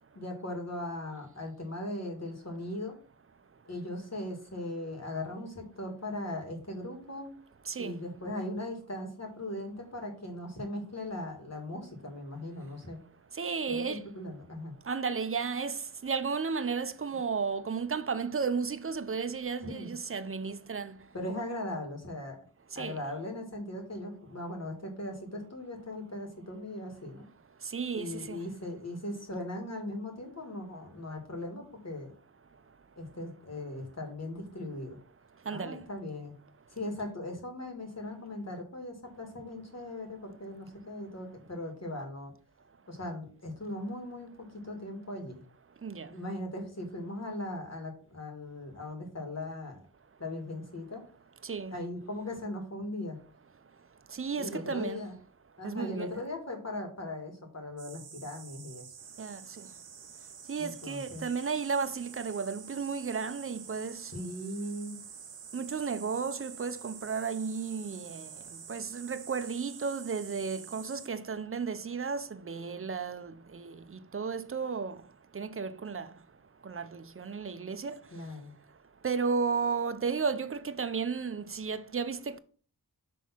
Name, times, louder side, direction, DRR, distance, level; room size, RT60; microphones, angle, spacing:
voice 1, 0.1-3.0 3.7-7.3 7.8-13.0 13.7-14.7 19.6-19.9 21.1-22.4 22.7-27.3 27.9-32.1 33.0-35.0 35.5-36.3 36.7-42.3 42.9-45.5 46.1-49.8 50.2-51.0 51.7-53.2 54.4-55.1 55.6-58.9 60.6-61.3 64.1-65.0 78.1-78.5, left 1 dB, 45° left, 2.2 m, -39 dB
voice 2, 7.7-8.0 13.4-14.1 14.9-21.0 22.8-23.0 27.7-28.4 35.5-35.8 45.8-46.1 51.4-51.8 54.1-55.0 55.6-56.2 59.2-59.7 60.5-64.1 65.5-68.3 68.7-73.8 74.1-75.0 75.3-76.1 76.6-77.9 79.0-82.4, right 5 dB, 40° right, 0.5 m, -33 dB
sound 1, 57.8-71.1, right 7 dB, 85° right, 0.7 m, -48 dB
6.1 x 3.5 x 5.9 m
wide cardioid pair, 75°, 36 cm